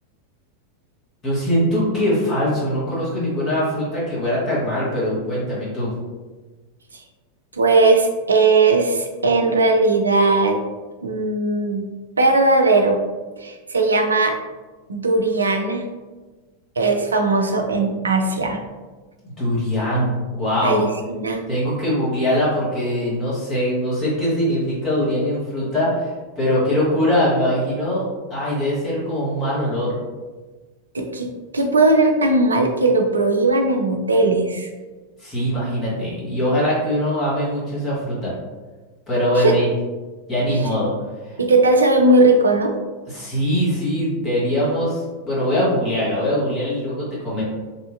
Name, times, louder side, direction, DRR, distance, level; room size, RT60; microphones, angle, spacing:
voice 1, 1.2-5.9 19.2-20.1 20.4-20.8 21.5-30.0 35.2-38.3 39.1-39.7 40.3-40.9 43.1-47.4, equal, 20° left, -9 dB, 1.3 m, -22 dB
voice 2, 7.5-10.6 11.0-11.8 12.2-13.0 13.4-14.3 14.9-15.8 16.8-18.6 20.6-21.4 30.9-34.7 39.4-39.5 40.5-40.6 41.4-42.7, right 2 dB, 75° right, 3 dB, 0.3 m, -18 dB
3.0 x 2.5 x 2.4 m, 1.3 s
figure-of-eight pair, 90°, 0 cm